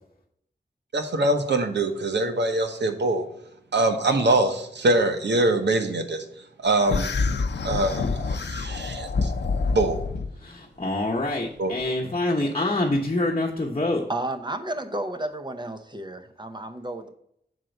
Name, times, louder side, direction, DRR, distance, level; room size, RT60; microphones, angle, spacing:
voice 1, 0.9-3.2 3.7-6.2 6.6-7.1 7.6-9.3 9.7-10.0 11.6-11.7, right 2 dB, 85° right, 1.0 m, -23 dB
sound 1, 6.9-10.3, left 4 dB, 75° left, 0.6 m, -27 dB
voice 2, 10.4-14.0, left 2 dB, 35° left, 1.0 m, -26 dB
voice 3, 14.1-17.1, right 1 dB, 25° right, 0.8 m, -32 dB
6.3 x 4.5 x 5.2 m
wide cardioid pair, 90°, 18 cm